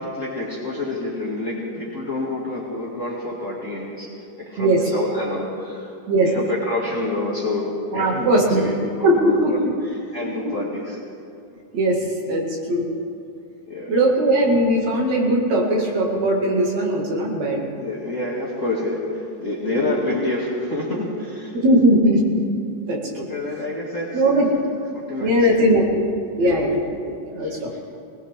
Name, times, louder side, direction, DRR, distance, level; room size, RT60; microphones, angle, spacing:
voice 1, 0.0-4.1 4.4-5.9 6.2-9.6 10.1-11.0 13.7-13.9 17.8-21.5 23.1-24.5 24.9-25.6 26.4-26.7 27.4-27.6, left 2 dB, 30° left, -5 dB, 2.0 m, -28 dB
voice 2, 7.9-8.6 9.0-9.5 11.7-12.8 13.9-17.6 19.7-19.9 21.6-22.4 22.9-23.3 24.1-24.5 25.2-26.1 26.4-27.7, right 1 dB, 65° right, -2 dB, 3.3 m, -19 dB
21.0 x 19.0 x 3.6 m, 2.5 s
omnidirectional pair, 3.4 m